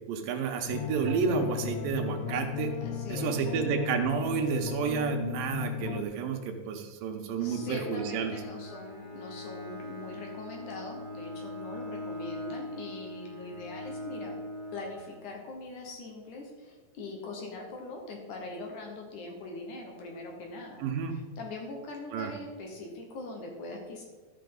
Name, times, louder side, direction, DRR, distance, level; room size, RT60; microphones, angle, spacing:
voice 1, 0.1-2.7 3.1-8.4 20.8-21.2 22.1-22.3, right 6 dB, 75° right, 4 dB, 2.4 m, -30 dB
sound 1, 0.7-6.0, left 9 dB, 80° left, 2.5 m, -35 dB
voice 2, 2.8-3.5 7.4-14.4 14.7-20.8 21.1-24.0, left 2 dB, 65° left, 1 dB, 2.3 m, -42 dB
Bowed string instrument, 7.4-15.6, left 1 dB, 30° left, 2.7 m, -41 dB
13.0 x 5.8 x 3.9 m, 1.3 s
omnidirectional pair, 4.5 m